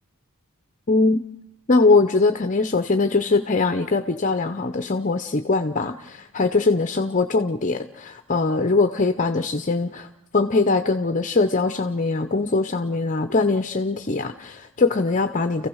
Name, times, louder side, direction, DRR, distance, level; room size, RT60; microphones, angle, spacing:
voice 1, 0.9-1.2 1.7-10.1 10.3-15.7, left 3 dB, 35° left, 7 dB, 0.7 m, -21 dB
30.0 x 15.5 x 6.3 m, 0.89 s
head